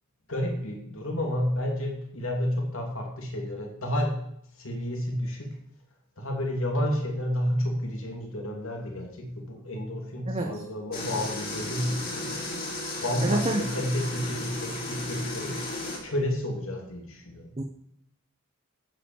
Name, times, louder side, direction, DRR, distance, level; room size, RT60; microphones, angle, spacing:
voice 1, 0.3-4.1 4.6-5.5 6.2-12.3 13.0-15.6 16.0-17.5, equal, 75° left, 2 dB, 2.8 m, -30 dB
sound 1, 10.9-16.0, left 2 dB, 45° left, 3.8 m, -34 dB
voice 2, 13.2-13.6 17.6-17.7, right 2 dB, 30° right, 3 dB, 0.8 m, -27 dB
9.5 x 7.6 x 7.0 m, 0.74 s
head